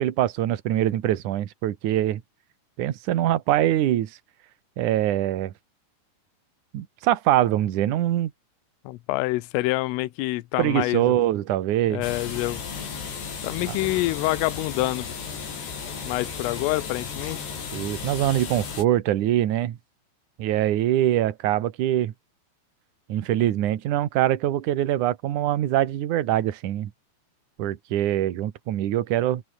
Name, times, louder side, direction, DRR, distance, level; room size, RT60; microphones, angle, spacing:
voice 1, 0.0-2.2 2.8-4.2 4.8-5.5 6.7-8.3 10.6-12.0 13.7-13.8 17.7-19.8 20.4-22.1 23.1-26.9 27.6-29.4, right 12 dB, 70° right, 1.9 m, -23 dB
voice 2, 8.9-11.1 11.9-12.6 13.4-15.1 16.1-17.5, left 19 dB, 90° left, 3.6 m, -26 dB
sound 1, 12.0-18.8, left 6 dB, 55° left, 7.1 m, -34 dB
open air
omnidirectional pair, 5.7 m